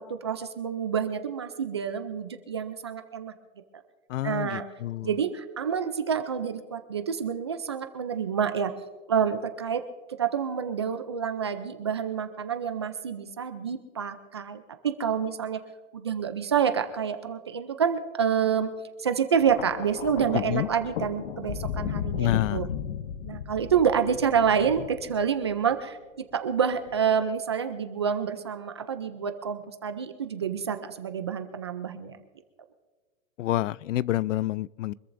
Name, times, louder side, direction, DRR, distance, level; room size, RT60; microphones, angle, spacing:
voice 1, 0.0-3.3 4.2-4.7 5.0-8.7 9.1-15.6 15.9-18.7 19.0-22.7 23.3-32.2, right 7 dB, 25° right, 0.4 m, -28 dB
voice 2, 4.1-5.1 20.3-20.7 22.2-22.7 33.4-34.9, left 14 dB, 75° left, 0.5 m, -28 dB
Thunder, 19.4-25.8 26.7-27.0, left 9 dB, 45° left, 0.8 m, -35 dB
25.0 x 14.0 x 2.6 m
hypercardioid pair, 170°, 38 cm